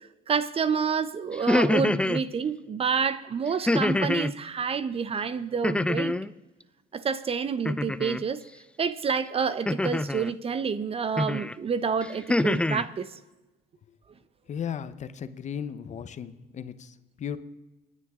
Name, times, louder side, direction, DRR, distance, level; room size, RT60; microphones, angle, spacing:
voice 1, 0.3-6.1 6.9-8.4 8.8-13.1, right 6 dB, 35° right, 0.8 m, -28 dB
sound 1, 1.3-2.2 3.7-4.3 5.6-6.3 7.6-8.2 9.7-10.3 11.2-11.5 12.0-12.8, left 2 dB, 5° left, 0.4 m, -25 dB
voice 2, 14.5-17.4, left 8 dB, 45° left, 0.9 m, -36 dB
28.0 x 9.9 x 3.7 m
cardioid pair, 110°, 17 cm